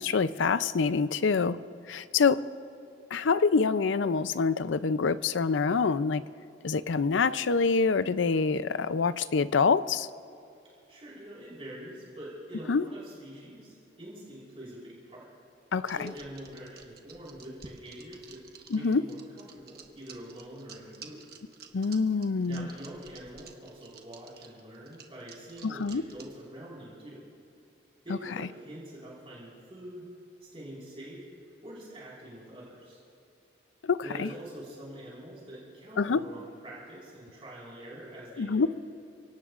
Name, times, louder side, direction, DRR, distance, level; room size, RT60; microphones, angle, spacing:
voice 1, 0.0-1.6 1.9-2.4 3.1-6.2 6.6-10.1 12.7-12.9 15.7-16.1 18.7-19.0 21.7-22.7 25.6-26.0 33.8-34.3 36.0-36.2 38.4-38.7, left 4 dB, 85° left, 14 dB, 0.5 m, -26 dB
voice 2, 10.9-15.3 15.9-21.2 22.4-27.3 28.0-30.1 30.4-31.2 31.6-33.0 34.0-38.7, right 1 dB, 30° right, -7 dB, 4.7 m, -45 dB
sound 1, 15.8-26.5, right 6 dB, 55° right, 1.3 m, -50 dB
30.0 x 18.0 x 2.5 m, 2.7 s
head